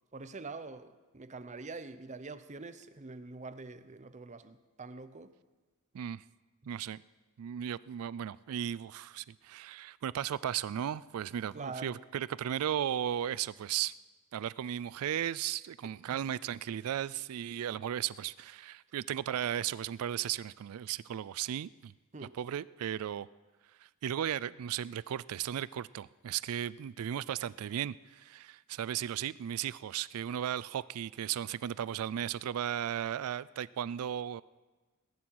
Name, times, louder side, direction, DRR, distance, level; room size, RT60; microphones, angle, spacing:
voice 1, 0.1-5.3 11.5-12.0 22.1-22.4, right 3 dB, 35° right, 12 dB, 0.7 m, -45 dB
voice 2, 6.7-7.0 7.4-13.9 14.3-21.9 22.3-23.3 24.0-34.4, right 10 dB, 75° right, 20 dB, 0.3 m, -35 dB
21.0 x 11.0 x 4.7 m, 1.3 s
head